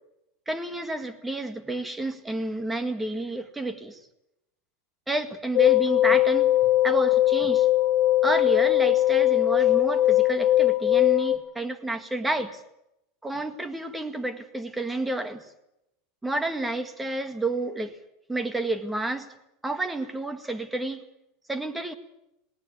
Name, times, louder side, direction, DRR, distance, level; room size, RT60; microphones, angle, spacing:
voice 1, 0.5-4.0 5.1-7.7 8.2-12.6 13.2-15.5 16.2-18.0 18.3-19.3 19.6-21.0 21.5-21.9, right 2 dB, 10° right, 10 dB, 1.8 m, -30 dB
sound 1, 5.5-11.4, left 14 dB, 55° left, 2.8 m, -20 dB
18.5 x 18.5 x 8.4 m, 0.85 s
supercardioid pair, 130°, 0 cm